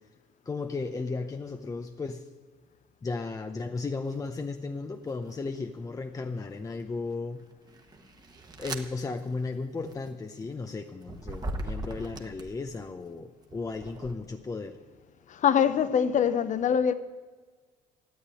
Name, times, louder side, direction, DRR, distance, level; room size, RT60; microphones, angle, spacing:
voice 1, 0.5-2.2 3.0-7.4 8.6-14.8, left 3 dB, 20° left, 0.7 m, -35 dB
sound 1, 4.1-4.4 5.0-5.8 6.4-12.8 13.4-14.1, right 1 dB, 25° right, 1.3 m, -40 dB
voice 2, 15.3-16.9, left 8 dB, 45° left, 0.9 m, -24 dB
12.5 x 8.2 x 10.0 m
cardioid pair, 110°, 17 cm